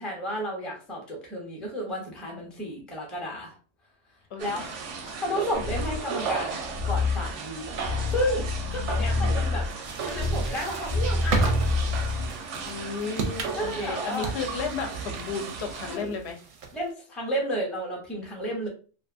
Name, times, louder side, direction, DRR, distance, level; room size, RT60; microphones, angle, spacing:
voice 1, 0.0-3.5 4.4-8.4 8.7-9.7 10.0-11.5 13.6-14.3 15.7-16.1 16.7-18.7, equal, ahead, -1 dB, 0.4 m, -32 dB
voice 2, 4.3-4.7 8.7-8.9 9.1-9.4 12.5-16.4, left 5 dB, 70° left, 3 dB, 0.8 m, -34 dB
sound 1, 4.4-16.0, right 5 dB, 90° right, 1.0 m, -36 dB
sound 2, 5.5-12.4, left 3 dB, 25° left, 0.8 m, -28 dB
sound 3, 9.6-16.9, right 4 dB, 60° right, 0.6 m, -35 dB
2.5 x 2.4 x 2.4 m, 0.38 s
omnidirectional pair, 1.2 m